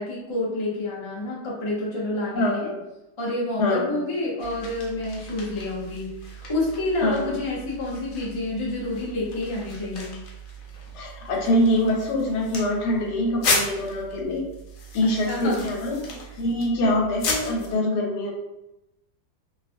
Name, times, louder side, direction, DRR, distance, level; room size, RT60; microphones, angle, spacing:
voice 1, 0.0-2.7 3.2-10.2 15.0-15.7, left 2 dB, 35° left, -5 dB, 0.4 m, -29 dB
voice 2, 2.3-2.8 3.6-4.0 7.0-7.4 10.9-14.4 14.9-18.3, left 1 dB, 90° left, 0 dB, 1.3 m, -24 dB
sound 1, 4.4-17.7, left 2 dB, 65° left, 0.9 m, -34 dB
2.6 x 2.4 x 2.5 m, 0.91 s
omnidirectional pair, 1.7 m